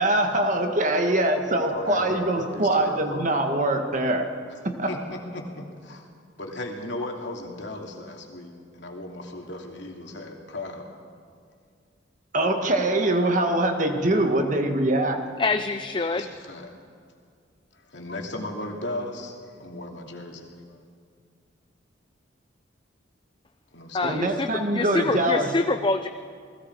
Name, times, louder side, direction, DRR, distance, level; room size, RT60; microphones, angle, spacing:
voice 1, 0.0-4.3 4.6-4.9 12.3-15.2 24.0-25.5, right 1 dB, 40° right, 5 dB, 1.8 m, -23 dB
voice 2, 1.7-3.5 4.9-6.1 6.4-10.9 16.1-16.7 17.7-19.3 19.6-20.5 23.7-24.4 24.9-25.1, left 1 dB, 65° left, 1 dB, 2.8 m, -36 dB
voice 3, 15.4-16.3 23.9-26.1, left 3 dB, 25° left, 8 dB, 0.5 m, -26 dB
29.0 x 20.0 x 4.8 m, 2.2 s
head